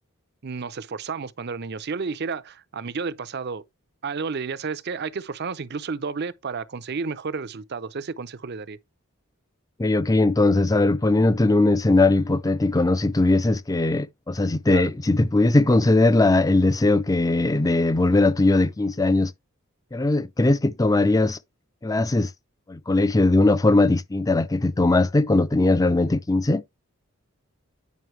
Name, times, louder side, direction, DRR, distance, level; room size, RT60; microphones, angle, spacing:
voice 1, 0.4-3.6 4.0-8.8 14.7-14.9, right 5 dB, 50° right, 0.6 m, -31 dB
voice 2, 9.8-19.3 19.9-21.4 21.8-22.3 22.7-26.6, left 2 dB, 15° left, 0.5 m, -20 dB
9.3 x 5.4 x 3.2 m
head